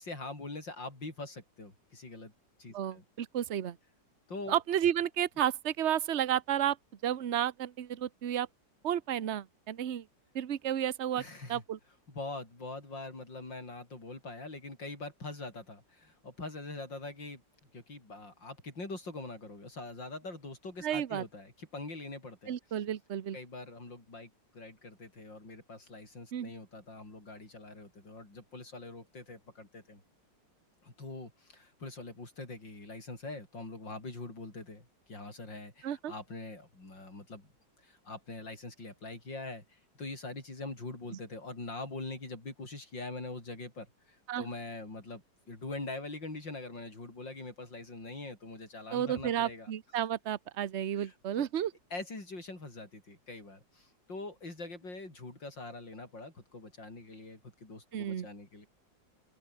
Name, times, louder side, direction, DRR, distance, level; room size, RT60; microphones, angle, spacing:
voice 1, 0.0-2.3 2.6-3.0 4.3-4.6 11.1-11.6 12.1-17.4 17.7-22.6 23.3-30.0 30.8-37.5 37.8-49.7 51.0-51.5 51.9-58.7, left 2 dB, 90° left, 7.2 m, -43 dB
voice 2, 2.7-3.8 4.5-6.8 7.0-8.5 8.8-10.0 10.3-11.2 11.5-11.8 20.8-21.2 22.5-23.4 26.3-26.5 35.8-36.1 44.3-44.5 48.9-51.7 57.9-58.3, right 10 dB, 45° right, 1.1 m, -32 dB
open air
omnidirectional pair, 1.9 m